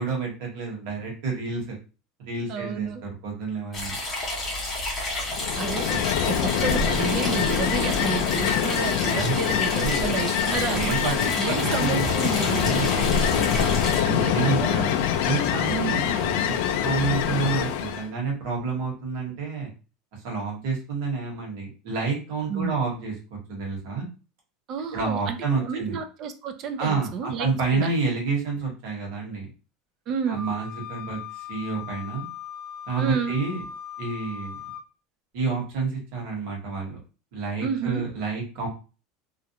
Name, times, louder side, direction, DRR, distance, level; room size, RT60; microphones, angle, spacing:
voice 1, 0.0-1.8 2.2-4.0 9.1-9.3 9.7-10.0 10.5-11.1 11.4-12.2 12.4-12.9 13.2-14.8 15.2-16.6 16.8-19.7 20.2-24.0 24.9-26.0 26.8-29.5 30.3-32.2 32.9-33.6 34.0-34.6 35.3-37.0 37.3-38.7, right 4 dB, 60° right, -1 dB, 1.1 m, -29 dB
voice 2, 2.5-3.0 5.6-12.6 14.0-14.9 15.7-15.9 22.5-22.8 24.7-27.5 27.7-27.9 30.1-30.4 33.0-33.3 37.6-38.1, right 6 dB, 35° right, 8 dB, 0.3 m, -31 dB
sound 1, 3.7-14.0, left 2 dB, 15° left, 0.8 m, -31 dB
Ocean, 5.3-18.1, left 8 dB, 65° left, 0.3 m, -24 dB
Wind instrument woodwind instrument, 30.3-34.8, left 6 dB, 20° right, 0.8 m, -39 dB
2.4 x 2.0 x 2.7 m, 0.34 s
supercardioid pair, 165°, 0 cm